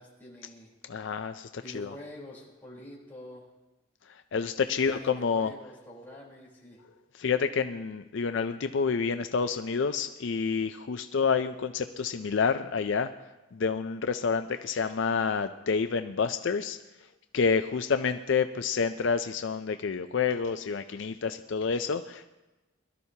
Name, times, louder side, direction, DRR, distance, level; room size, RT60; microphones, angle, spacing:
voice 1, 0.0-0.7 1.6-3.5 4.7-6.8, left 1 dB, 10° left, -6 dB, 3.7 m, -46 dB
voice 2, 0.9-1.9 4.3-5.5 7.2-13.1 13.5-16.8 17.3-22.3, left 5 dB, 65° left, 9 dB, 0.4 m, -28 dB
22.0 x 12.5 x 2.8 m, 1.1 s
head